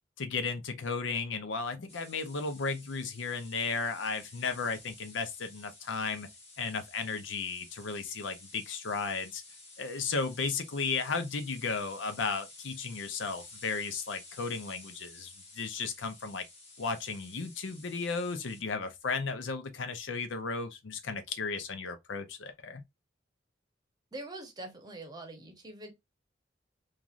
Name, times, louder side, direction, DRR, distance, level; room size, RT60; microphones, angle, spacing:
voice 1, 0.2-6.3 6.6-9.4 9.8-16.4 16.8-22.8, left 4 dB, 85° left, 0.6 m, -34 dB
sound 1, 1.9-18.6, left 2 dB, 35° left, 1.1 m, -52 dB
voice 2, 24.1-25.9, right 2 dB, 20° right, 0.9 m, -44 dB
3.1 x 2.4 x 2.4 m
head